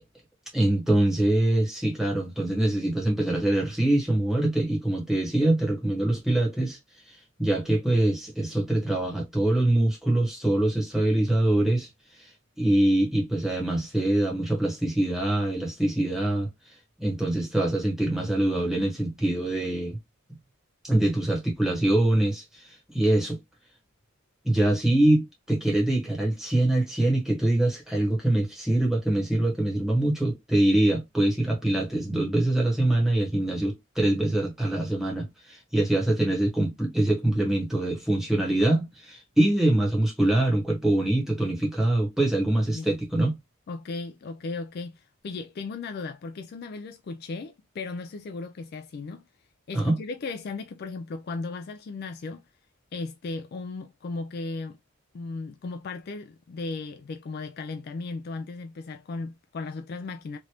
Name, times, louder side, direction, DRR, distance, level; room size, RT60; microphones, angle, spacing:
voice 1, 0.5-6.8 7.1-11.9 12.1-12.3 12.6-16.5 17.0-20.0 20.8-23.4 24.4-43.4 49.7-50.0, right 1 dB, ahead, 1.2 m, -24 dB
voice 2, 43.7-49.3 49.7-52.4 52.9-54.8 55.1-60.4, left 3 dB, 50° left, 0.3 m, -36 dB
3.2 x 2.5 x 2.9 m
head